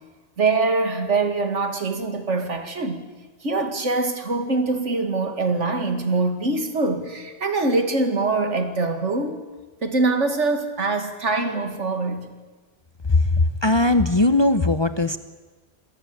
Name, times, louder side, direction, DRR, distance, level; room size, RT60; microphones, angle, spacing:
voice 1, 0.4-3.0 3.4-9.4 9.8-12.3, right 3 dB, 80° right, 7 dB, 2.5 m, -23 dB
voice 2, 13.6-15.2, left 2 dB, 25° left, 11 dB, 0.8 m, -19 dB
26.0 x 19.0 x 8.6 m, 1.3 s
omnidirectional pair, 1.2 m